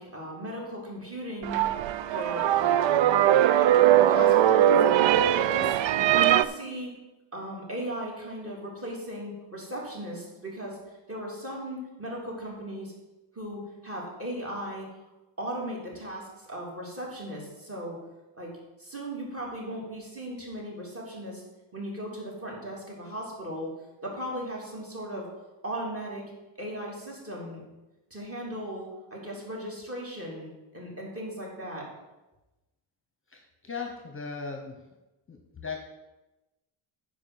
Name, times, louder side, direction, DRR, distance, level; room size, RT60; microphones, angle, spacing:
voice 1, 0.0-1.6 2.1-3.4 3.8-5.8 6.2-6.9 7.3-12.9 13.3-14.9 15.4-18.0 18.4-18.5 18.8-21.4 21.7-23.7 24.0-25.3 25.6-26.2 26.6-27.6 28.1-31.9, equal, 25° right, -3 dB, 3.3 m, -37 dB
sound 1, 1.4-6.4, right 11 dB, 65° right, 0.5 m, -21 dB
voice 2, 33.3-34.9 35.3-35.8, left 5 dB, 25° left, 3 dB, 1.0 m, -38 dB
9.6 x 5.1 x 7.9 m, 1.0 s
wide cardioid pair, 150°, 50 cm